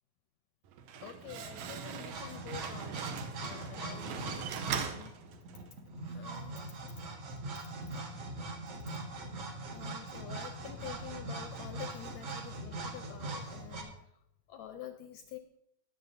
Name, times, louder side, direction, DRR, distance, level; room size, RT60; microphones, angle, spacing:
Slam, 0.6-5.8, right 7 dB, 75° right, 1.5 m, -41 dB
voice 1, 1.0-3.1 3.5-5.2 5.5-5.6 6.1-6.5 6.9-7.0 9.7-14.1 14.5-15.4, left 10 dB, 75° left, 6 dB, 1.8 m, -48 dB
sound 1, 2.1-13.8, right 2 dB, 55° right, 2.2 m, -42 dB
21.0 x 7.1 x 2.7 m, 0.75 s
omnidirectional pair, 3.6 m